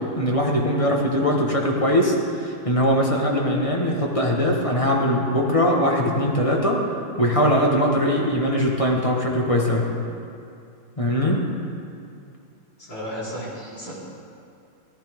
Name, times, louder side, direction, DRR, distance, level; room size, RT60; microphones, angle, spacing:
voice 1, 0.2-6.8 7.2-9.9 11.0-11.5, equal, 20° left, -2 dB, 1.4 m, -21 dB
voice 2, 12.8-13.9, equal, 55° left, -8 dB, 4.4 m, -33 dB
16.5 x 14.5 x 3.6 m, 2.5 s
omnidirectional pair, 2.0 m